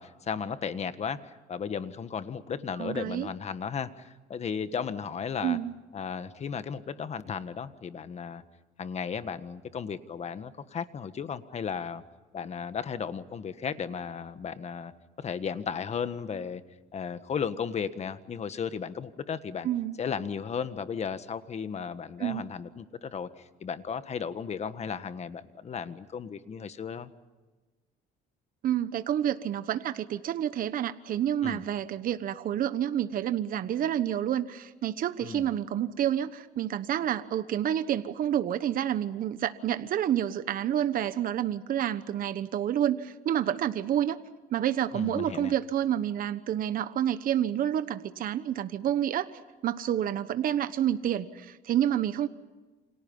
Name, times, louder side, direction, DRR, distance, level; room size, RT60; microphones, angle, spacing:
voice 1, 0.0-5.6 5.9-8.4 8.8-12.0 12.3-14.9 15.2-16.6 16.9-19.7 20.0-27.1 31.4-31.6 35.2-35.5 44.9-45.5, left 6 dB, 40° left, 11 dB, 1.6 m, -35 dB
voice 2, 2.8-3.3 5.4-5.7 19.6-20.0 22.2-22.4 28.6-44.2 44.5-49.3 49.6-52.3, right 10 dB, 55° right, 12 dB, 1.2 m, -29 dB
29.5 x 27.0 x 5.6 m, 1.2 s
cardioid pair, 110°, 17 cm